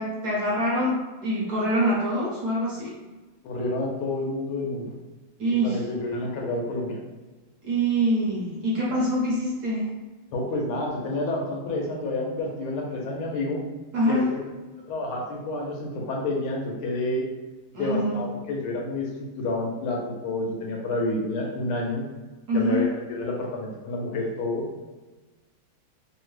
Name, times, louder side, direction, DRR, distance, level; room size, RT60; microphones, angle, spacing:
voice 1, 0.0-2.9 5.4-5.8 7.6-9.9 13.9-14.4 17.7-18.3 22.5-22.9, right 1 dB, 55° right, -6 dB, 1.2 m, -25 dB
voice 2, 3.4-4.9 5.6-7.0 10.3-13.6 14.0-14.4 14.9-17.3 17.8-19.1 19.4-22.0 22.5-24.6, left 2 dB, 85° left, -1 dB, 1.6 m, -29 dB
3.6 x 2.1 x 3.2 m, 1.2 s
omnidirectional pair, 2.3 m